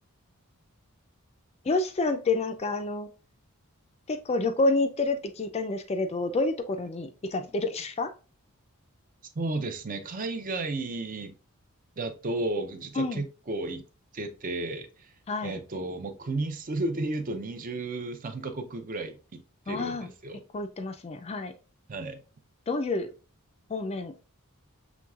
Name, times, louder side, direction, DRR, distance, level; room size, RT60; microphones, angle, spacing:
voice 1, 1.6-3.1 4.1-8.1 13.0-13.2 15.3-15.6 19.7-20.1 20.5-21.5 22.7-23.1 23.7-24.1, left 3 dB, 30° left, 8 dB, 0.4 m, -28 dB
voice 2, 9.4-11.3 12.0-13.8 14.1-15.1 15.4-20.4 21.9-22.2, right 2 dB, 40° right, 8 dB, 0.5 m, -33 dB
6.1 x 3.1 x 2.4 m, 0.34 s
head